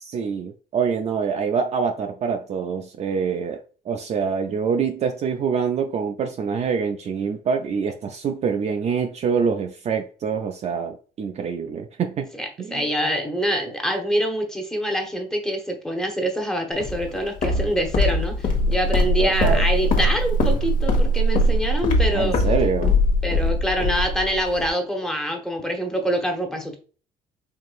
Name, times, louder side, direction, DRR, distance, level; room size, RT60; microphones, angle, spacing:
voice 1, 0.0-3.6 3.9-12.3 12.6-12.9 19.2-19.7 22.1-23.0, right 6 dB, 40° right, 0.4 m, -25 dB
voice 2, 12.4-22.4 23.2-26.8, equal, 5° left, 0.9 m, -25 dB
Walk footsteps, 16.8-24.7, left 1 dB, 55° left, 1.0 m, -21 dB
4.8 x 2.9 x 2.4 m
cardioid pair, 110°, 17 cm